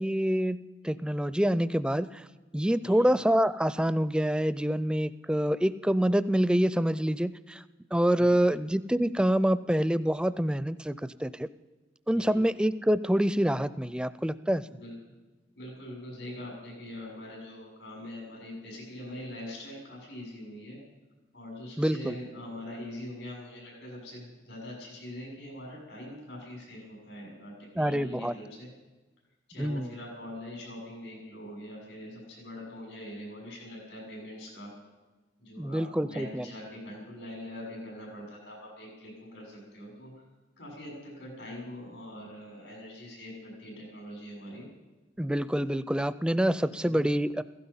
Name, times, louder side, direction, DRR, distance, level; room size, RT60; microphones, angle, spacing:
voice 1, 0.0-2.2 2.5-7.6 7.9-11.5 12.1-14.6 21.8-22.2 27.8-28.3 29.6-29.9 35.6-36.4 45.2-47.4, equal, 5° right, 16 dB, 0.4 m, -26 dB
voice 2, 8.2-8.5 12.1-12.4 14.7-15.1 15.6-20.8 21.3-28.7 29.5-34.7 35.4-40.2 40.6-44.7 46.8-47.1, left 1 dB, 90° left, -1 dB, 6.6 m, -43 dB
16.5 x 15.5 x 5.6 m, 1.2 s
head